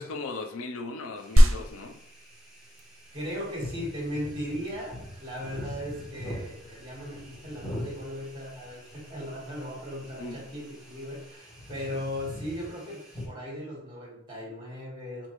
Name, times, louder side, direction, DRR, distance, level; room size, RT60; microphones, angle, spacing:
voice 1, 0.0-2.0 10.2-10.4, left 3 dB, 80° left, 0.5 m, -37 dB
sound 1, 1.2-13.3, left 1 dB, 5° right, 1.4 m, -43 dB
sound 2, 1.4-11.3, equal, 70° right, 0.6 m, -29 dB
voice 2, 3.1-15.3, equal, 25° right, 1.6 m, -37 dB
5.2 x 2.8 x 3.0 m
head